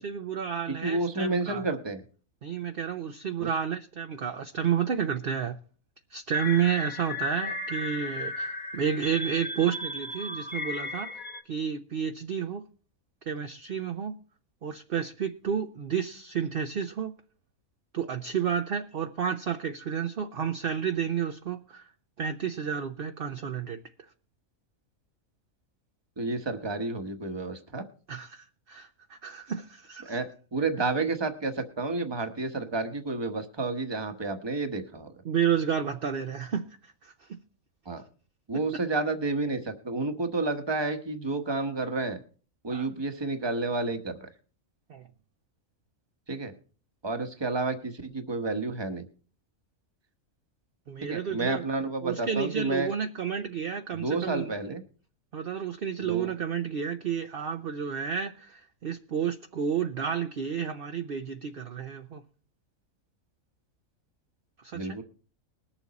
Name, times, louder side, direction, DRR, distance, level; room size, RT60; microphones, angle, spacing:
voice 1, 0.0-1.6 2.4-5.6 6.1-11.2 11.4-12.6 13.2-14.2 14.6-17.1 17.9-21.9 22.2-23.8 28.1-30.2 35.2-37.4 38.5-38.6 42.7-42.9 44.9-45.1 50.9-51.6 52.0-54.5 55.3-62.2 64.6-65.0, right 7 dB, 50° right, 0.8 m, -31 dB
voice 2, 0.7-2.0 3.4-3.5 26.2-27.8 30.0-35.1 37.9-38.0 38.5-42.2 42.6-44.3 46.3-46.5 47.0-49.0 51.0-52.9 53.9-54.8 56.0-56.3 64.7-65.0, right 3 dB, 20° right, 1.1 m, -30 dB
sound 1, 6.3-11.4, left 2 dB, 35° left, 1.5 m, -35 dB
20.5 x 7.2 x 4.0 m
omnidirectional pair, 1.4 m